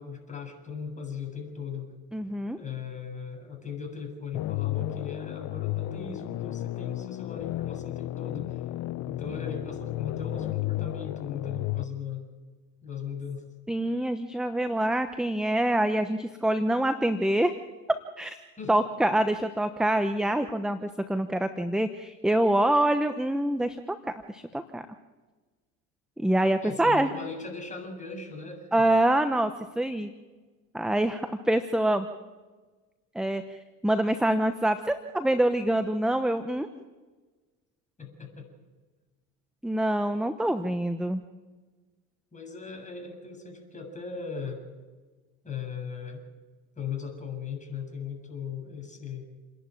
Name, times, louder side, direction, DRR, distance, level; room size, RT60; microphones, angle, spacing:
voice 1, 0.0-1.9 2.6-8.6 9.0-12.2 12.8-13.4 18.6-18.8 26.6-28.8 38.0-38.5 42.3-44.6 45.4-46.2 46.8-49.2, left 6 dB, 20° left, 3 dB, 7.4 m, -38 dB
voice 2, 2.1-2.6 13.7-17.5 18.2-18.4 18.7-24.0 24.3-24.9 26.2-27.1 28.7-30.1 30.7-32.1 33.1-36.7 39.6-41.2, right 1 dB, ahead, 10 dB, 1.0 m, -25 dB
sound 1, 4.3-11.8, left 16 dB, 50° left, 0.7 m, -33 dB
28.5 x 11.5 x 9.1 m, 1.3 s
supercardioid pair, 90°, 35 cm